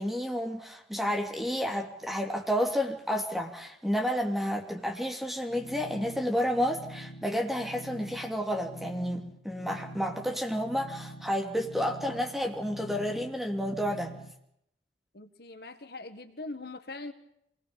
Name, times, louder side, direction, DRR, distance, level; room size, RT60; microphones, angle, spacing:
voice 1, 0.0-14.1, equal, ahead, 2 dB, 2.8 m, -31 dB
sound 1, 5.5-14.3, right 1 dB, 80° left, 1.9 m, -46 dB
voice 2, 15.1-17.1, left 2 dB, 55° left, 8 dB, 1.7 m, -41 dB
26.0 x 19.5 x 7.1 m, 0.74 s
head